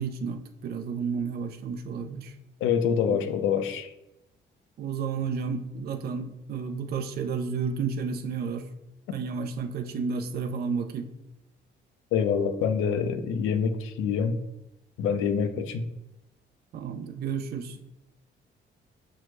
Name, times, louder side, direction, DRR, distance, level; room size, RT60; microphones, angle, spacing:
voice 1, 0.0-2.3 3.1-3.2 4.8-8.7 9.1-11.1 16.7-17.8, right 5 dB, 55° right, 0.4 m, -31 dB
voice 2, 2.6-3.9 12.1-14.4 15.0-15.8, left 7 dB, 90° left, 0.4 m, -26 dB
6.1 x 2.1 x 3.1 m
cardioid pair, 90°, 20 cm